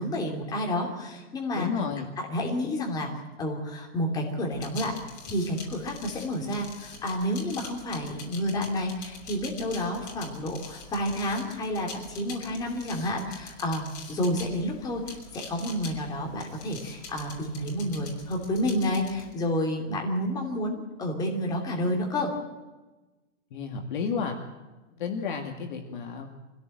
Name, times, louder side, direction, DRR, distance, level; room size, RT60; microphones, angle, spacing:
voice 1, 0.0-1.7 2.2-3.1 3.4-4.9 5.2-22.3, left 1 dB, 10° left, 0 dB, 2.7 m, -30 dB
voice 2, 1.5-2.1 23.5-24.4 25.0-26.3, left 5 dB, 40° left, 4 dB, 2.1 m, -32 dB
sound 1, 4.5-19.3, left 4 dB, 55° left, 5.9 m, -45 dB
25.0 x 16.5 x 7.7 m, 1.2 s
hypercardioid pair, 170°, 38 cm